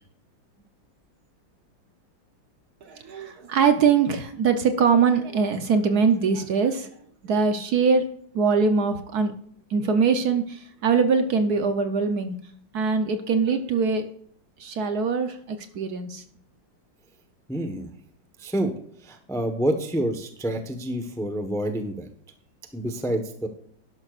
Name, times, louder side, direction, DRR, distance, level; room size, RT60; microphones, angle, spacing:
voice 1, 2.8-6.9 7.2-8.0 8.3-9.3 9.7-12.4 12.7-14.0 14.6-16.2, right 5 dB, 60° right, 8 dB, 1.2 m, -22 dB
voice 2, 17.5-17.9 18.4-18.7 19.0-22.1 22.7-23.5, right 1 dB, 5° left, 6 dB, 0.6 m, -28 dB
11.5 x 11.5 x 2.5 m, 0.64 s
omnidirectional pair, 2.1 m